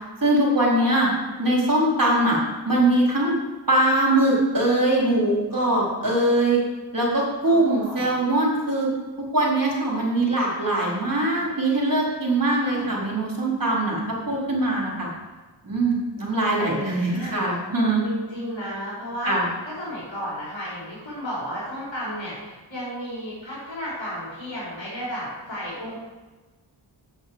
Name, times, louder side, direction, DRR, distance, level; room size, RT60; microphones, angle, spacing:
voice 1, 0.2-1.1 1.4-2.4 2.7-3.3 3.7-6.6 6.9-8.9 9.3-15.1 15.6-18.0 19.2-19.5, right 1 dB, 50° right, -4 dB, 4.3 m, -22 dB
voice 2, 7.5-8.1 12.6-12.9 17.0-17.4 18.0-19.3 19.6-26.0, equal, 80° left, -8 dB, 4.5 m, -33 dB
9.1 x 7.8 x 7.7 m, 1.2 s
wide cardioid pair, 50°, 44 cm